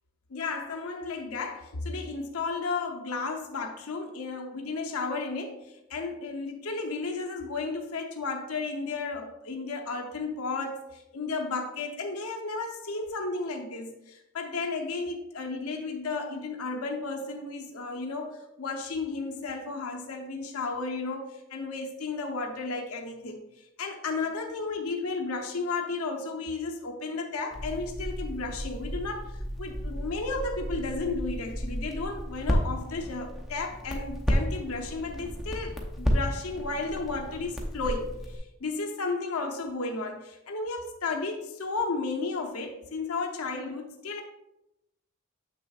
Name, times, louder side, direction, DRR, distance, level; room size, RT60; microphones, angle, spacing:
voice 1, 0.3-23.4 23.8-44.2, left 3 dB, 80° left, 3 dB, 0.7 m, -33 dB
Crackle, 27.5-38.4, equal, ahead, 0.7 m, -32 dB
7.5 x 6.1 x 2.4 m, 0.91 s
head